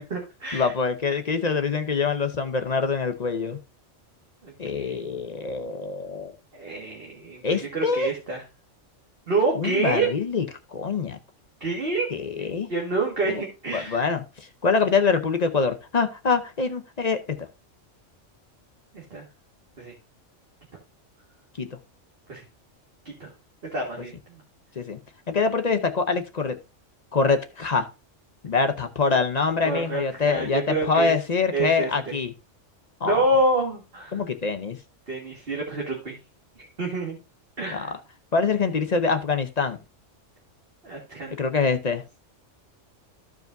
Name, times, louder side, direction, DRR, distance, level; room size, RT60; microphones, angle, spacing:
voice 1, 0.0-0.7 4.4-5.1 6.5-7.4 7.7-8.4 9.3-10.1 11.6-12.1 12.4-14.0 18.9-19.2 19.8-19.9 22.3-22.4 23.2-23.3 23.7-24.1 29.6-31.1 31.5-31.9 33.0-34.2 35.1-36.2 36.8-37.2 37.6-37.9 40.8-41.4, right 2 dB, 50° right, 1.9 m, -27 dB
voice 2, 0.5-3.6 4.6-6.3 7.4-8.1 9.5-10.4 10.7-11.2 12.1-12.7 13.7-14.2 14.6-17.4 21.6-21.7 24.8-25.0 25.3-26.6 27.1-27.9 28.4-32.3 33.0-33.2 34.1-34.8 37.7-37.9 38.3-39.8 41.4-42.0, left 4 dB, 40° left, 0.7 m, -24 dB
14.5 x 4.8 x 2.6 m
omnidirectional pair, 1.3 m